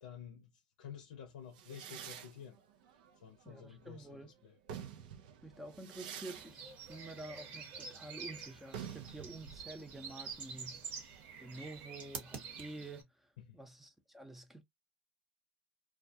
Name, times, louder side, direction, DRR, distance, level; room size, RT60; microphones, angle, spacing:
voice 1, 0.0-2.6 3.2-4.6 13.4-13.6, left 8 dB, 75° left, 0.6 m, -51 dB
sound 1, 1.5-4.0 4.5-12.0, right 8 dB, 70° right, 0.5 m, -50 dB
voice 2, 3.4-4.3 5.4-10.9 11.4-14.6, right 2 dB, 5° right, 0.6 m, -49 dB
sound 2, 6.3-13.0, right 5 dB, 45° right, 1.1 m, -48 dB
2.3 x 2.2 x 2.6 m
hypercardioid pair, 110°, 4 cm